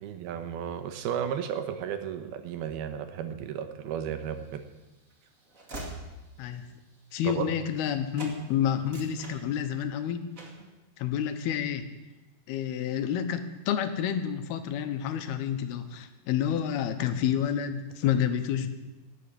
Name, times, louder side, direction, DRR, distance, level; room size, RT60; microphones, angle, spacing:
voice 1, 0.0-4.6 7.2-7.5, right 8 dB, 85° right, 9 dB, 3.0 m, -34 dB
Train / Slam, 4.3-7.9 8.1-8.4 8.7-9.9 10.3-10.7, right 1 dB, 25° right, 2.2 m, -44 dB
voice 2, 7.1-10.3 11.0-11.9 12.5-18.7, left 9 dB, 90° left, 9 dB, 3.0 m, -29 dB
18.0 x 7.6 x 8.6 m, 1.1 s
omnidirectional pair, 4.4 m